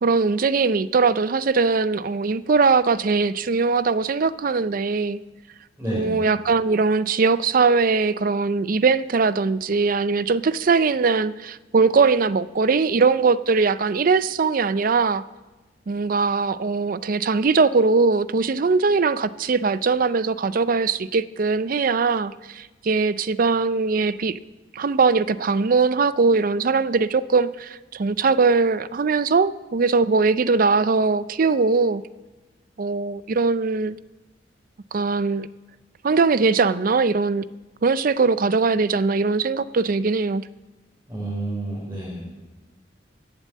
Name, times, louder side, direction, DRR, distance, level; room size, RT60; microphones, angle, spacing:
voice 1, 0.0-5.2 5.9-15.2 15.9-24.4 24.7-32.0 32.8-34.0 34.9-35.5 36.0-37.5 37.8-40.4, right 4 dB, 50° right, 16 dB, 0.4 m, -21 dB
voice 2, 5.8-6.2 41.1-42.3, right 1 dB, 15° right, -7 dB, 4.0 m, -30 dB
15.5 x 8.8 x 7.4 m, 1.2 s
head